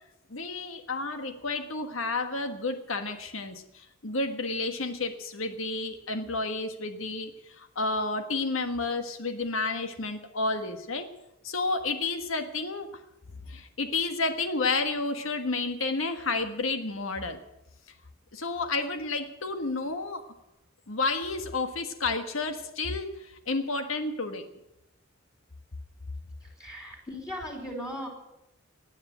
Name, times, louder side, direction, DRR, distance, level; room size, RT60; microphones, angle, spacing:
voice 1, 0.3-11.1 11.4-13.0 13.5-17.4 18.3-20.3 20.9-24.5, left 3 dB, 80° left, 7 dB, 1.5 m, -31 dB
voice 2, 26.4-28.1, equal, 15° left, 0 dB, 3.0 m, -38 dB
18.0 x 9.6 x 8.1 m, 0.89 s
head